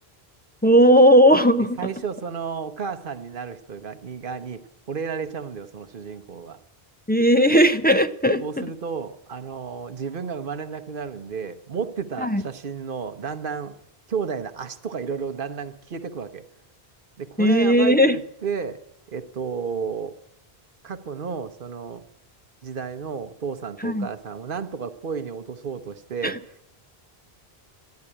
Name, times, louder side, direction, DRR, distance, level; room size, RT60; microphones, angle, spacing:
voice 1, 0.6-1.8 7.1-8.4 12.2-12.4 17.4-18.2 23.8-24.1 26.2-26.3, equal, 10° left, 6 dB, 0.5 m, -16 dB
voice 2, 1.8-4.6 4.9-6.6 8.4-13.7 14.1-16.4 17.2-18.8 19.1-20.1 20.8-22.0 22.6-26.7, right 6 dB, 60° right, 8 dB, 1.1 m, -32 dB
13.5 x 10.5 x 9.9 m, 0.81 s
omnidirectional pair, 1.0 m